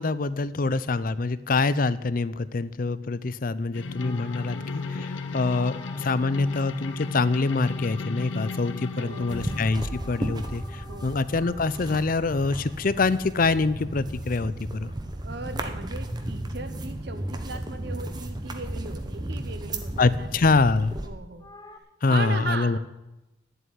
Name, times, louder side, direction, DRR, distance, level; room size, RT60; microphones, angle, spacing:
voice 1, 0.0-14.9 20.0-20.9 22.0-22.8, left 3 dB, 50° left, 16 dB, 0.5 m, -25 dB
sound 1, 3.7-9.7, left 4 dB, 85° left, 0.8 m, -34 dB
sound 2, 3.9-14.5 21.4-21.8, left 3 dB, 20° left, 0.8 m, -47 dB
voice 2, 9.0-9.5 10.9-11.1 15.2-20.3 20.7-21.5 22.1-22.8, right 3 dB, 60° right, 9 dB, 1.0 m, -37 dB
sound 3, 9.3-21.1, right 1 dB, 20° right, 1.0 m, -34 dB
10.0 x 7.8 x 9.8 m, 0.97 s
head